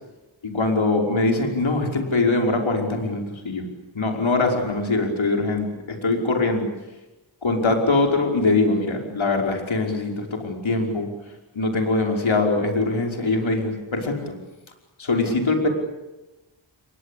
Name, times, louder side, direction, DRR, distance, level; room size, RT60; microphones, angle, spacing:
voice 1, 0.4-3.7 4.0-6.7 7.4-11.1 11.5-14.3 15.0-15.7, left 3 dB, 75° left, 2 dB, 5.5 m, -22 dB
29.0 x 23.0 x 8.6 m, 1.0 s
wide cardioid pair, 60°, 47 cm